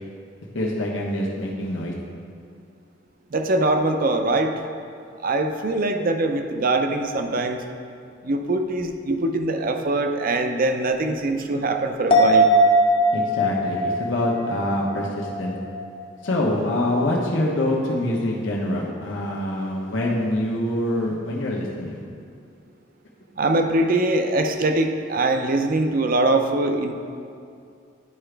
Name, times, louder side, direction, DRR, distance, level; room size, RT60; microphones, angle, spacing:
voice 1, 0.5-1.9 13.1-15.6 16.2-22.0, left 1 dB, 80° left, -3 dB, 1.0 m, -25 dB
voice 2, 3.3-4.5 5.2-7.6 8.2-12.5 23.4-26.9, right 2 dB, 45° right, 5 dB, 0.5 m, -22 dB
sound 1, 12.1-15.8 16.1-16.2, right 1 dB, 30° left, 0.6 m, -20 dB
11.0 x 4.9 x 3.4 m, 2.4 s
head